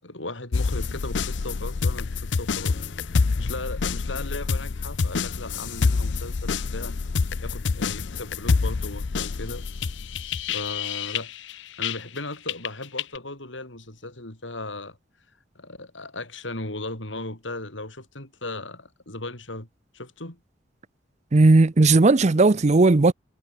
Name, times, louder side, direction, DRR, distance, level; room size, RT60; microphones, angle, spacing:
voice 1, 0.0-2.8 3.0-7.0 7.4-9.6 10.5-15.0 15.5-19.7 19.9-20.4, left 2 dB, 85° left, 6.5 m, -37 dB
sound 1, 0.5-12.2 12.5-13.2, left 4 dB, 70° left, 0.6 m, -27 dB
sound 2, 1.0-1.1 2.6-6.7, equal, 45° left, 7.4 m, -52 dB
voice 2, 21.3-23.1, right 3 dB, 40° right, 0.6 m, -16 dB
head